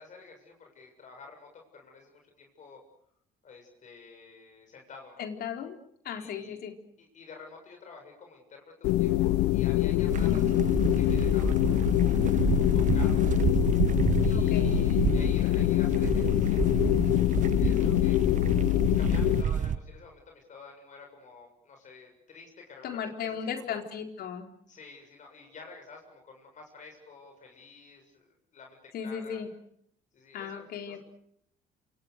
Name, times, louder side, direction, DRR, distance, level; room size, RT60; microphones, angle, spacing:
voice 1, 0.0-2.8 3.4-5.3 6.2-6.6 7.0-10.4 10.9-13.2 14.2-16.7 17.6-18.2 18.8-23.8 24.7-28.2 28.5-29.4 30.1-31.0, left 4 dB, 45° left, 2 dB, 7.5 m, -50 dB
voice 2, 5.2-5.8 6.0-6.7 10.2-10.6 14.3-14.7 17.5-17.9 22.8-24.5 28.9-29.5 30.3-31.0, left 7 dB, 65° left, 5 dB, 4.3 m, -36 dB
sound 1, 8.8-19.4, left 16 dB, 85° left, 1.1 m, -24 dB
sound 2, 10.1-19.8, right 9 dB, 45° right, 1.3 m, -30 dB
28.0 x 27.0 x 6.7 m, 0.71 s
cardioid pair, 110°, 17 cm